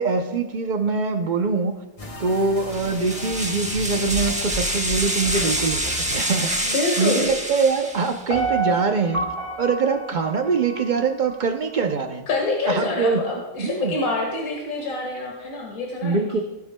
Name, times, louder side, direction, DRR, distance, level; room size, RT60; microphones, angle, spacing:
voice 1, 0.0-1.8 2.2-9.3 9.6-12.2 12.7-13.3 13.6-13.9 16.0-16.4, right 4 dB, 55° right, 5 dB, 0.5 m, -23 dB
sound 1, 2.0-7.2, left 1 dB, 25° left, 1.2 m, -37 dB
sound 2, 2.7-8.3, right 1 dB, 5° right, 0.8 m, -27 dB
voice 2, 6.7-7.3 12.3-16.4, left 3 dB, 70° left, -2 dB, 2.1 m, -26 dB
Piano, 8.3-11.4 11.8-11.9, right 3 dB, 40° left, 2.9 m, -28 dB
17.0 x 9.1 x 2.2 m, 1.1 s
omnidirectional pair, 1.6 m